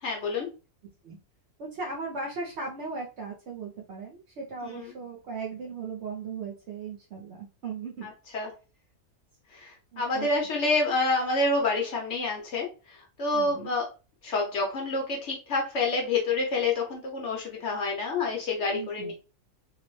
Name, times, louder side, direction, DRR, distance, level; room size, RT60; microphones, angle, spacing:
voice 1, 0.0-0.5 4.6-4.9 8.0-8.5 9.5-13.9 14.2-19.1, left 3 dB, 60° left, 0 dB, 0.9 m, -28 dB
voice 2, 1.6-8.1 9.9-10.3 13.3-13.7 18.7-19.1, right 4 dB, 60° right, -2 dB, 0.8 m, -37 dB
2.7 x 2.0 x 3.0 m, 0.33 s
omnidirectional pair, 1.6 m